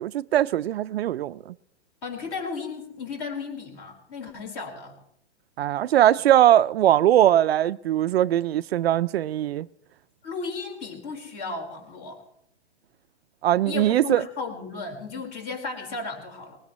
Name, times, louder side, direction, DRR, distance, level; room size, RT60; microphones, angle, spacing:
voice 1, 0.0-1.5 5.6-9.7 13.4-14.2, right 12 dB, 60° right, 0.5 m, -21 dB
voice 2, 2.0-5.0 10.2-12.2 13.6-16.6, left 4 dB, 35° left, 4.5 m, -34 dB
20.5 x 19.5 x 3.1 m
hypercardioid pair, 155°, 34 cm